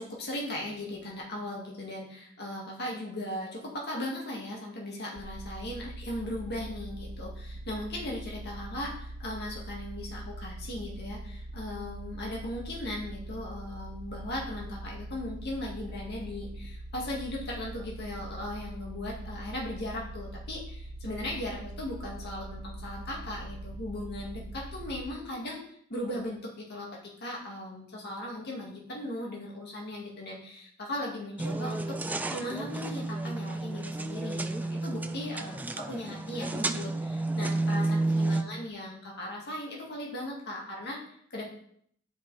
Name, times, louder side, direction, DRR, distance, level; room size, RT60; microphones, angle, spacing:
voice 1, 0.0-25.6 25.9-32.0 32.3-41.4, left 1 dB, 55° left, -2 dB, 1.9 m, -38 dB
sound 1, 5.2-25.0, right 1 dB, 75° right, 1.3 m, -42 dB
sound 2, 31.4-38.4, right 2 dB, 10° right, 0.3 m, -31 dB
9.9 x 5.0 x 4.0 m, 0.66 s
head